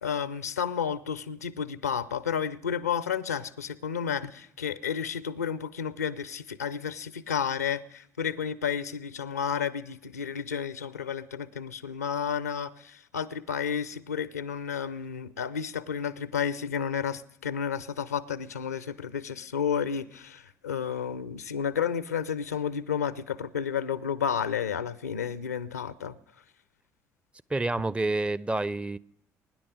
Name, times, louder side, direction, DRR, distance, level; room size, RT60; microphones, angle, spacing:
voice 1, 0.0-26.1, left 7 dB, 80° left, 0.5 m, -31 dB
voice 2, 27.5-29.0, right 2 dB, 15° right, 0.5 m, -28 dB
23.0 x 10.5 x 5.1 m
figure-of-eight pair, 50°, 8 cm